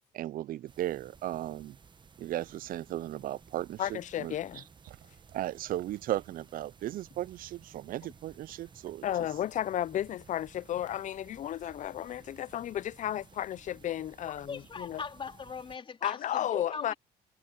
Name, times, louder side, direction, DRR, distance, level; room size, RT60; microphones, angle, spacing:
voice 1, 0.1-1.8 2.2-4.6 5.3-9.1, right 14 dB, 55° right, 0.5 m, -36 dB
sound 1, 0.7-15.8, right 5 dB, 25° right, 1.1 m, -57 dB
voice 2, 3.8-4.6 9.0-15.0 16.0-16.9, left 11 dB, 45° left, 0.5 m, -33 dB
sound 2, 4.8-14.7, right 16 dB, 85° right, 4.4 m, -65 dB
voice 3, 14.5-17.0, left 5 dB, 30° left, 3.7 m, -40 dB
cardioid pair, 110°, 17 cm